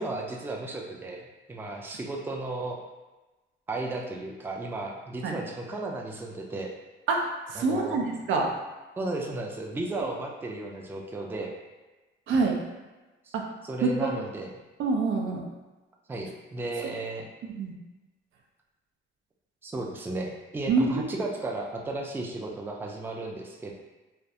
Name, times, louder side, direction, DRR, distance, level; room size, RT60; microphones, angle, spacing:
voice 1, 0.0-2.8 3.7-6.7 7.6-8.0 9.0-11.5 13.2-13.3 13.6-14.5 16.1-17.3 19.6-23.7, right 2 dB, 10° right, 0 dB, 0.3 m, -34 dB
voice 2, 7.1-8.5 12.3-12.6 13.3-13.5 13.8-14.2 14.8-15.5 17.4-17.7 20.7-21.1, right 3 dB, 75° right, 1 dB, 0.5 m, -26 dB
2.3 x 2.1 x 2.7 m, 1.1 s
cardioid pair, 90°, 20 cm